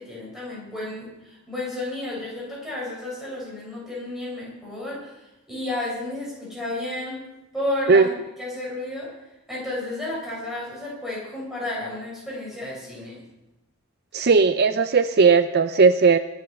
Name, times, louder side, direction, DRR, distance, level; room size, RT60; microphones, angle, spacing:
voice 1, 0.0-5.1 5.5-7.2 7.5-9.1 9.5-13.2, left 1 dB, ahead, -5 dB, 7.1 m, -32 dB
voice 2, 14.1-16.2, right 4 dB, 50° right, 11 dB, 0.5 m, -17 dB
22.5 x 8.4 x 5.9 m, 0.99 s
head